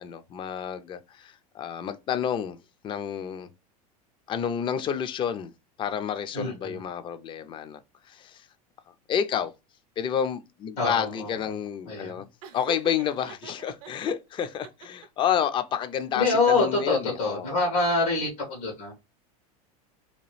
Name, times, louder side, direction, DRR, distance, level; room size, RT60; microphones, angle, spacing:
voice 1, 0.0-2.6 2.8-3.5 4.3-5.5 5.8-7.8 8.1-8.4 9.1-9.5 10.0-12.3 12.5-17.5, left 8 dB, 25° left, 0.3 m, -30 dB
voice 2, 6.3-6.8 10.8-11.6 11.8-12.2 16.1-18.9, left 3 dB, 85° left, 1.2 m, -26 dB
Laughter, 12.4-13.9 14.4-15.3, right 7 dB, 65° right, 0.6 m, -42 dB
2.9 x 2.3 x 3.1 m
supercardioid pair, 110°, 20 cm